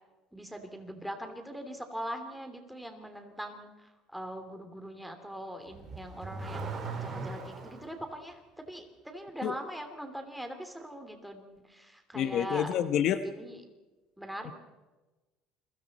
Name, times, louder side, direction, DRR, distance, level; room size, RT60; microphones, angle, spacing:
voice 1, 0.3-8.4 8.7-12.7 13.2-13.6 14.2-14.5, equal, ahead, 5 dB, 2.9 m, -41 dB
Car / Accelerating revving vroom, 5.7-7.9, right 3 dB, 25° right, 4.8 m, -38 dB
voice 2, 12.1-13.2 14.5-14.6, left 10 dB, 50° left, 10 dB, 1.0 m, -28 dB
29.0 x 23.5 x 4.2 m, 1.2 s
cardioid pair, 150°, 0 cm